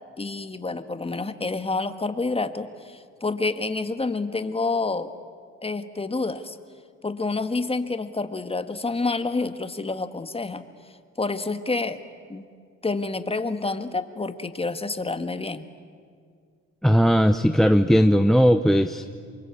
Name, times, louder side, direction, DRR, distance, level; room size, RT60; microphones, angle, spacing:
voice 1, 0.2-5.1 5.6-6.6 7.0-10.6 11.2-12.0 12.3-12.5 12.8-15.7, left 3 dB, 20° left, 10 dB, 1.6 m, -28 dB
voice 2, 16.8-19.1, equal, ahead, 11 dB, 0.8 m, -18 dB
27.5 x 24.0 x 8.6 m, 2.1 s
cardioid pair, 90°, 30 cm